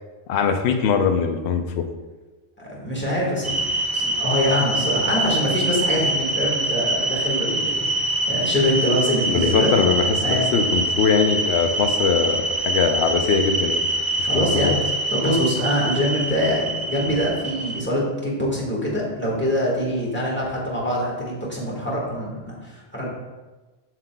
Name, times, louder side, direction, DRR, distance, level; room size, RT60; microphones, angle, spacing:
voice 1, 0.3-1.8 9.3-13.9 14.2-14.8, left 6 dB, 70° left, 6 dB, 0.8 m, -21 dB
voice 2, 2.6-3.7 3.9-9.7 10.2-10.5 14.2-14.7 15.1-23.1, left 1 dB, 10° left, -4 dB, 1.4 m, -24 dB
sound 1, 3.4-17.8, right 2 dB, 40° right, 0.3 m, -24 dB
7.4 x 6.6 x 2.2 m, 1.2 s
omnidirectional pair, 1.2 m